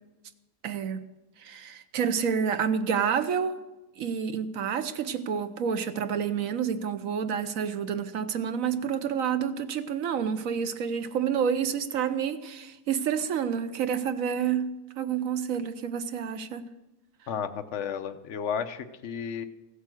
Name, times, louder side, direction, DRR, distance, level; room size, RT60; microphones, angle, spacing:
voice 1, 0.6-1.0 1.4-3.6 4.0-14.7 15.0-16.7, right 7 dB, 60° right, 1.1 m, -29 dB
voice 2, 17.3-19.4, left 7 dB, 55° left, 1.0 m, -33 dB
15.0 x 8.3 x 6.4 m
omnidirectional pair, 1.8 m